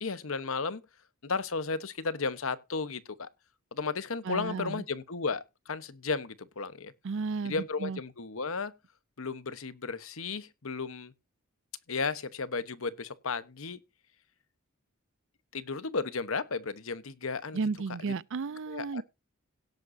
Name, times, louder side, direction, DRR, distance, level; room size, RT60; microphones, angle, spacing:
voice 1, 0.0-0.8 1.2-3.3 3.7-6.9 7.4-8.7 9.2-11.1 11.9-13.8 15.5-17.6 18.7-19.0, left 4 dB, 70° left, 1.1 m, -34 dB
voice 2, 4.3-4.8 7.0-8.0 17.5-19.0, right 4 dB, 65° right, 0.5 m, -33 dB
17.5 x 7.8 x 2.7 m
head